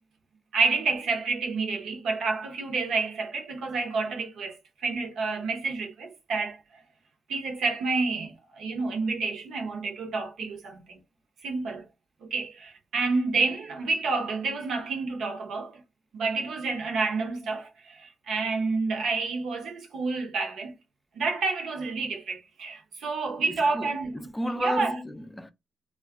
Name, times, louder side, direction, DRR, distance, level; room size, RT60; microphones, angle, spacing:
voice 1, 0.5-4.6 4.8-6.6 7.3-11.0 11.4-11.9 12.2-15.8 16.1-20.7 21.2-24.3 24.6-25.0, right 4 dB, 70° right, 0.8 m, -29 dB
voice 2, 23.5-25.5, equal, 5° left, 0.4 m, -33 dB
2.3 x 2.2 x 3.5 m
cardioid pair, 90°, 0 cm